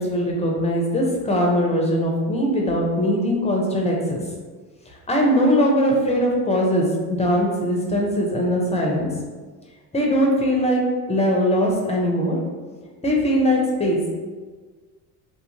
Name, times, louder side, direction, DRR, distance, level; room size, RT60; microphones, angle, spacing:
voice 1, 0.0-4.2 5.1-9.1 9.9-10.8 11.1-12.4 13.0-14.1, equal, 15° left, -1 dB, 0.7 m, -21 dB
2.8 x 2.5 x 2.9 m, 1.4 s
hypercardioid pair, 60°, 47 cm